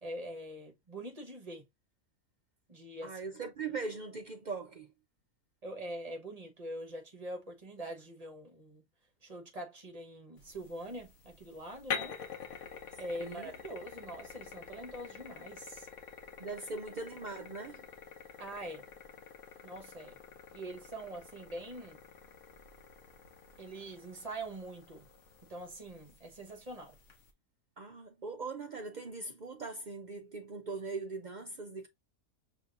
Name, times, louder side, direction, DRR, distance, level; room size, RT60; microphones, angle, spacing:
voice 1, 0.0-1.7 2.7-3.2 5.6-8.8 9.2-12.2 13.0-15.9 18.4-18.9 19.6-20.2 20.5-22.0 23.6-25.1 25.4-27.0, right 1 dB, 30° right, 1.2 m, -44 dB
voice 2, 3.0-4.9 13.2-13.5 16.4-17.8 27.8-31.9, right 4 dB, 65° right, 0.4 m, -40 dB
sound 1, 10.4-27.3, left 6 dB, 60° left, 1.2 m, -47 dB
5.9 x 3.2 x 2.5 m
omnidirectional pair, 1.5 m